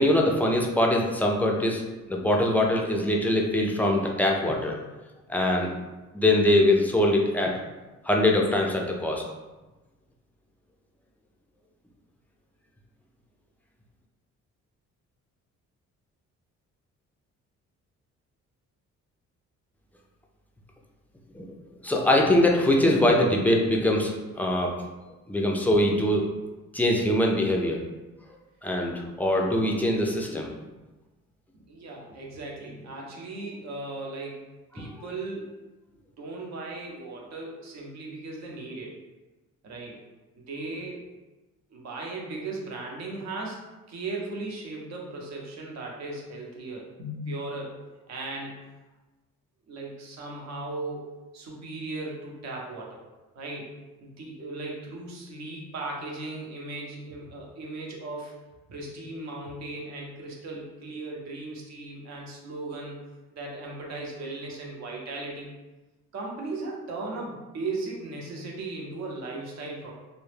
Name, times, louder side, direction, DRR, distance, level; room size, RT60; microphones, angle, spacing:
voice 1, 0.0-1.8 2.1-4.8 5.3-5.7 6.1-7.5 8.1-9.2 21.3-21.5 21.8-24.7 25.3-26.2 26.7-27.8 28.6-30.5 34.8-34.9, left 1 dB, 5° left, 0 dB, 0.3 m, -23 dB
voice 2, 31.5-34.5 34.7-35.5 36.2-38.9 39.6-40.0 40.5-41.0 41.7-43.6 43.9-47.8 48.1-48.5 49.7-53.0 53.4-53.7 54.0-58.3 58.7-63.0 63.3-65.5 66.1-69.9, right 2 dB, 60° right, -1 dB, 0.7 m, -37 dB
2.2 x 2.0 x 3.1 m, 1.1 s
cardioid pair, 90°, 30 cm